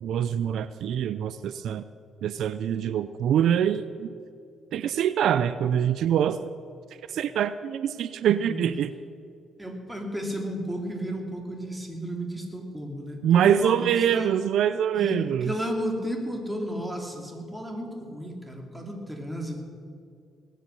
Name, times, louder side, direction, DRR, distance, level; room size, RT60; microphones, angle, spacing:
voice 1, 0.0-1.8 2.2-4.1 4.7-6.4 7.1-8.9 13.2-15.5, right 9 dB, 75° right, 14 dB, 0.5 m, -24 dB
voice 2, 9.6-14.3 14.9-19.6, equal, 10° right, 2 dB, 3.0 m, -33 dB
19.5 x 9.3 x 7.0 m, 2.4 s
cardioid pair, 90°, 0 cm